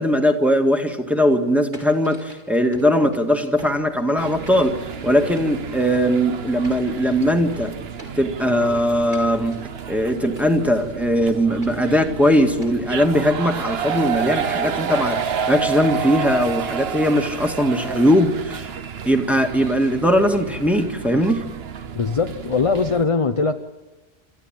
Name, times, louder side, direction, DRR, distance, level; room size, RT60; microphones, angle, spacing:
voice 1, 0.0-4.8 5.0-7.8 8.2-9.6 9.9-18.7 19.1-21.4, equal, ahead, 3 dB, 1.8 m, -20 dB
sound 1, 1.7-4.2 4.5-6.0 6.4-7.5 8.0-8.7 9.1-9.9 10.4-11.0 11.6-12.2 12.6-13.1 14.1-14.6 15.0-15.5 16.2-16.8, right 1 dB, 50° right, 4.8 m, -44 dB
sound 2, 4.2-23.0, right 7 dB, 75° right, 1.2 m, -30 dB
voice 2, 21.9-23.6, left 4 dB, 35° left, 8 dB, 0.8 m, -21 dB
27.0 x 14.5 x 8.9 m, 1.2 s
omnidirectional pair, 1.1 m